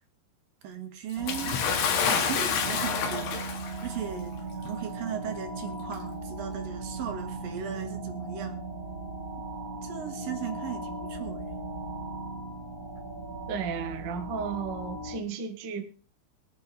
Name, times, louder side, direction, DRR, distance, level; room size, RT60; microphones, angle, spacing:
voice 1, 0.6-1.6 2.1-3.4 3.8-4.3 4.6-8.6 9.8-11.4, right 8 dB, 60° right, 6 dB, 3.3 m, -37 dB
sound 1, 1.2-15.2, right 2 dB, 30° right, 2.0 m, -37 dB
Bathtub (filling or washing) / Splash splatter, 1.3-3.9 4.8-4.9 5.9-6.0, left 7 dB, 75° left, 3.7 m, -28 dB
voice 2, 13.5-15.8, right 6 dB, 80° right, 7 dB, 1.0 m, -34 dB
24.0 x 9.1 x 3.4 m, 0.39 s
omnidirectional pair, 4.9 m